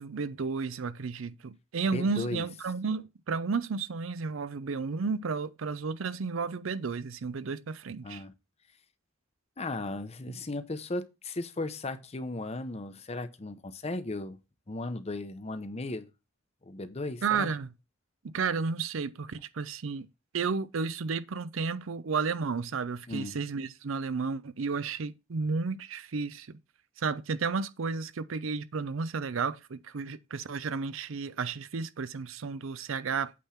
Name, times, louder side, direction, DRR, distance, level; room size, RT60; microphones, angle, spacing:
voice 1, 0.0-8.2 10.3-10.4 17.2-17.7 18.3-20.1 20.3-26.6 27.0-33.3, right 5 dB, 80° right, 0.5 m, -32 dB
voice 2, 1.8-2.5 8.0-8.3 9.6-14.4 14.7-16.1 16.6-17.5 23.1-23.4, left 2 dB, 30° left, 0.7 m, -36 dB
8.5 x 3.6 x 5.7 m
head